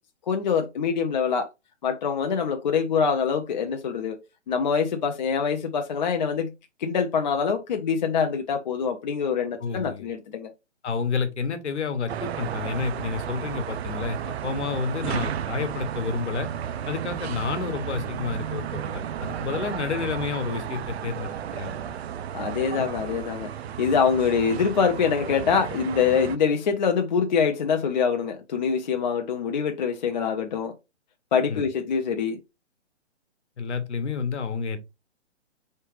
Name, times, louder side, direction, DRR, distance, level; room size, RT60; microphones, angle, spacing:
voice 1, 0.3-1.5 1.8-4.2 4.5-6.5 6.8-10.5 22.3-23.5 23.8-30.7 31.3-32.4, left 6 dB, 40° left, 0.5 m, -24 dB
voice 2, 9.6-10.1 10.8-16.5 16.9-21.9 22.7-22.9 31.5-31.7 33.6-34.8, left 5 dB, 70° left, 1.1 m, -30 dB
sound 1, 12.1-26.4, right 9 dB, 60° right, 0.5 m, -33 dB
4.6 x 3.3 x 3.1 m
hypercardioid pair, 150°, 35 cm